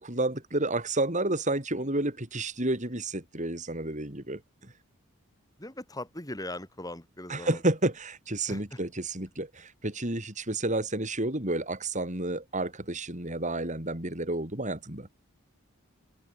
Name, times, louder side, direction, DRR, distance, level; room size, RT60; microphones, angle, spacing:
voice 1, 0.0-4.7 7.3-15.1, right 2 dB, 35° right, 4.7 m, -30 dB
voice 2, 5.6-7.6 8.5-8.8, left 1 dB, 15° left, 7.8 m, -39 dB
head